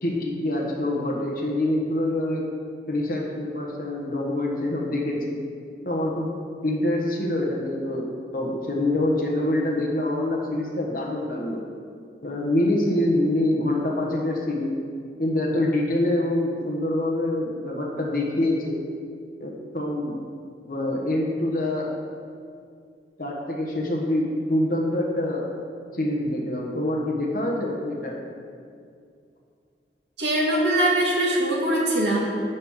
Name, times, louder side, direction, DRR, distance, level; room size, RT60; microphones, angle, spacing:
voice 1, 0.0-2.4 2.9-5.4 5.8-6.3 6.6-11.7 12.2-14.7 15.2-18.8 19.4-20.2 20.7-21.9 23.2-25.5 25.9-28.2, left 1 dB, 50° left, -2 dB, 1.4 m, -25 dB
voice 2, 30.2-32.2, right 1 dB, 80° right, -4 dB, 2.1 m, -22 dB
11.0 x 3.7 x 7.3 m, 2.3 s
head